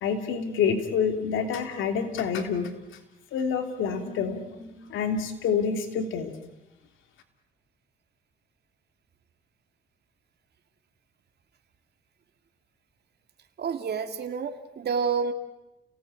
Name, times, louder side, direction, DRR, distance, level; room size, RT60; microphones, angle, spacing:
voice 1, 0.0-2.7 3.3-6.3, left 6 dB, 85° left, 6 dB, 3.1 m, -27 dB
voice 2, 13.6-15.3, right 6 dB, 55° right, 6 dB, 2.5 m, -29 dB
30.0 x 18.0 x 8.5 m, 0.96 s
cardioid pair, 90°, 20 cm